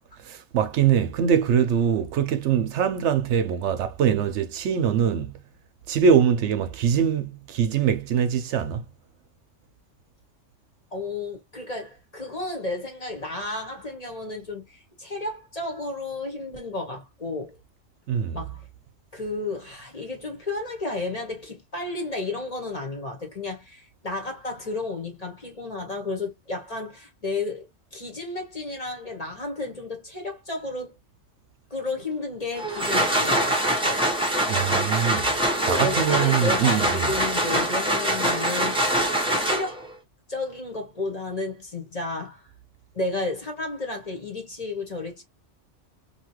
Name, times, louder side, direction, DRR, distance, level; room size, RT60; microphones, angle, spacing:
voice 1, 0.2-5.3 5.9-8.8 18.1-18.4 34.5-37.1, right 8 dB, 75° right, 0.9 m, -23 dB
voice 2, 10.9-17.6 18.3-18.6 19.1-31.0 31.7-34.0 35.6-38.8 39.4-39.9 40.3-42.4 42.9-45.2, left 2 dB, 35° left, 1.0 m, -32 dB
sound 1, 32.6-39.9, right 1 dB, 5° right, 0.7 m, -24 dB
2.8 x 2.4 x 2.8 m
omnidirectional pair, 1.2 m